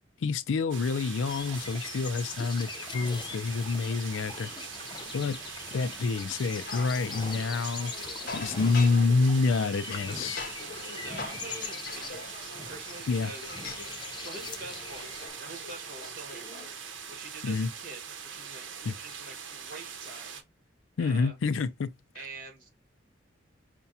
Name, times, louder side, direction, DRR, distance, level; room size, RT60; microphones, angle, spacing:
voice 1, 0.2-4.5 5.1-5.4 5.7-7.9 8.3-10.5 13.1-13.3 17.4-17.7 18.8-18.9 21.0-21.9, left 4 dB, 90° left, 0.4 m, -27 dB
sound 1, 0.7-20.4, right 7 dB, 80° right, 0.8 m, -42 dB
sound 2, 1.3-15.3, left 5 dB, 25° left, 0.4 m, -42 dB
sound 3, 6.6-16.7, left 4 dB, 50° left, 0.7 m, -43 dB
voice 2, 10.9-12.2 12.7-13.6 14.2-16.8 17.1-18.0 18.3-20.4 21.0-21.4 22.1-22.8, right 3 dB, 50° right, 1.5 m, -46 dB
5.6 x 2.2 x 2.7 m
head